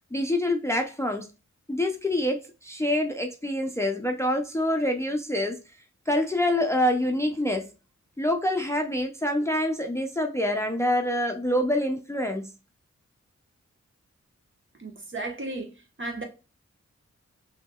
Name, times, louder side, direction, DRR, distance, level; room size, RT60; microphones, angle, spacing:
voice 1, 0.1-1.3 1.7-5.6 6.1-7.7 8.2-12.5, left 1 dB, 10° left, 0.6 m, -26 dB
voice 2, 14.8-15.7 16.0-16.2, right 2 dB, 40° right, 1.3 m, -34 dB
5.7 x 2.8 x 2.3 m
cardioid pair, 55°, 29 cm